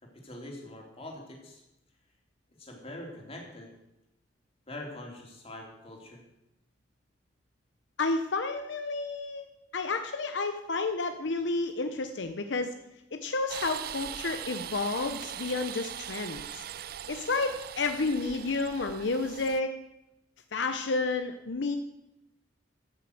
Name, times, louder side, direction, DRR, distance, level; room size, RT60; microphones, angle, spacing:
voice 1, 0.0-1.6 2.6-3.7 4.7-6.2, left 1 dB, 35° left, 0 dB, 3.1 m, -44 dB
voice 2, 8.0-9.5 9.7-12.7 13.1-16.6 17.1-19.7 20.5-21.8, left 3 dB, 75° left, 7 dB, 0.8 m, -31 dB
sound 1, 13.5-19.6, right 10 dB, 55° right, 0.4 m, -41 dB
14.0 x 6.9 x 7.8 m, 0.89 s
head